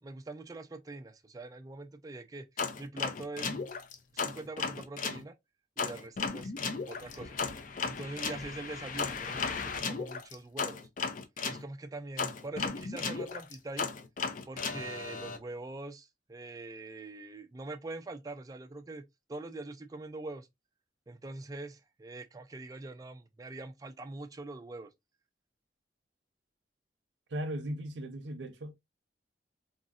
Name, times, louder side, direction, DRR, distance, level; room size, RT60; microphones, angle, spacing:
voice 1, 0.0-2.5 2.8-3.7 4.1-5.4 5.8-6.5 6.9-7.4 7.8-10.8 11.4-13.9 14.5-20.5 21.1-24.9, right 2 dB, 20° right, 0.3 m, -43 dB
sound 1, 2.6-5.2 5.8-11.6 12.2-15.4, left 5 dB, 45° left, 0.4 m, -35 dB
voice 2, 27.3-28.7, right 1 dB, 85° right, 0.6 m, -37 dB
3.7 x 2.0 x 2.3 m
head